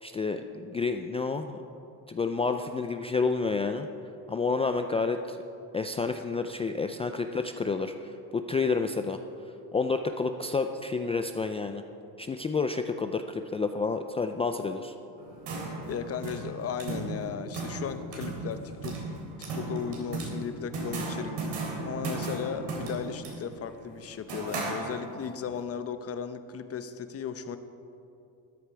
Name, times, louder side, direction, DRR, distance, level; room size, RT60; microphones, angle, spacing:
voice 1, 0.0-1.6 2.1-3.9 4.3-5.4 5.7-9.2 9.7-11.8 12.2-14.9, left 4 dB, 15° left, 6 dB, 0.3 m, -29 dB
sound 1, 15.2-25.3, right 2 dB, 80° right, 3.5 m, -36 dB
voice 2, 15.9-18.9 19.5-27.6, left 7 dB, 35° left, 10 dB, 0.8 m, -36 dB
13.5 x 9.9 x 4.7 m, 2.7 s
cardioid pair, 110°, 40 cm